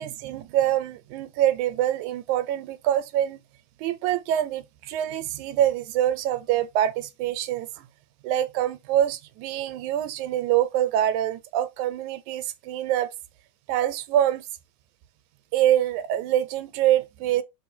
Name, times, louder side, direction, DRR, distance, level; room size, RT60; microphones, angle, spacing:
voice 1, 0.0-3.4 3.8-7.9 8.2-13.1 13.7-14.5 15.5-17.4, right 11 dB, 85° right, 2.2 m, -25 dB
6.7 x 3.3 x 4.4 m
omnidirectional pair, 3.4 m